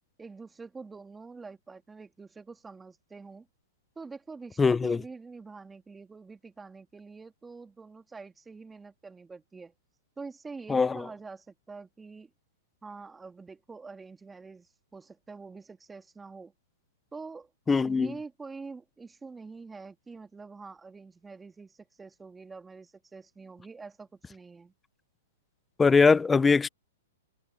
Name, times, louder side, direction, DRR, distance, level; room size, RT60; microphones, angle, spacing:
voice 1, 0.2-3.5 4.0-9.7 10.2-12.3 12.8-16.5 17.1-17.5 17.8-24.7, right 4 dB, 10° right, 2.4 m, -46 dB
voice 2, 4.6-5.0 10.7-11.1 17.7-18.1 25.8-26.7, left 4 dB, 10° left, 0.6 m, -22 dB
hypercardioid pair, 140°, 0 cm